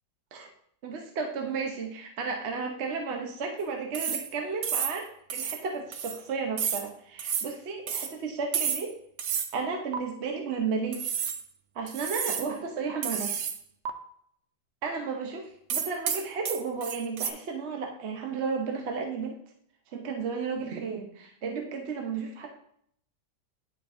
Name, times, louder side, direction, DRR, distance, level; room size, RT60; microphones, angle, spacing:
voice 1, 0.8-8.9 9.5-11.0 11.7-13.4 14.8-19.4 19.9-22.5, right 5 dB, 50° right, 2 dB, 0.9 m, -33 dB
sound 1, 3.9-4.3 4.6-5.0 5.3-5.6 5.9-6.2 6.6-6.9 7.2-7.5 7.9-8.1 8.5-8.9 9.2-9.5 9.9-10.0 10.9-11.4 11.9-12.5 13.0-13.6 13.8-13.9 15.7-17.3, right 7 dB, 75° right, 0.6 m, -31 dB
10.0 x 4.4 x 2.6 m, 0.67 s
omnidirectional pair, 1.8 m